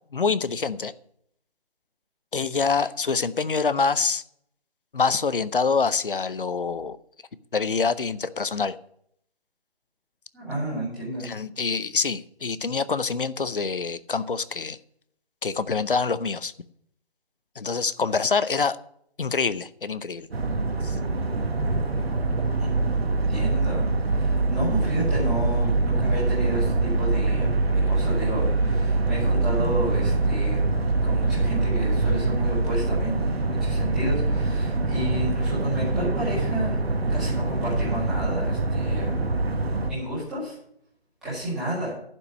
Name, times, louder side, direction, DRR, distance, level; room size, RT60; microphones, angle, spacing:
voice 1, 0.1-0.9 2.3-4.2 4.9-7.0 7.5-8.7 11.2-14.8 15.4-16.5 17.6-18.8 19.2-20.3 20.8-21.0, left 5 dB, 55° left, 16 dB, 0.7 m, -25 dB
voice 2, 10.3-11.3 22.6-30.6 31.0-36.8 37.1-39.2 39.9-40.6 41.2-41.9, right 1 dB, ahead, -13 dB, 2.2 m, -31 dB
sound 1, 20.3-39.9, right 2 dB, 70° right, 1.7 m, -24 dB
10.5 x 6.0 x 8.4 m, 0.69 s
hypercardioid pair, 180°, 32 cm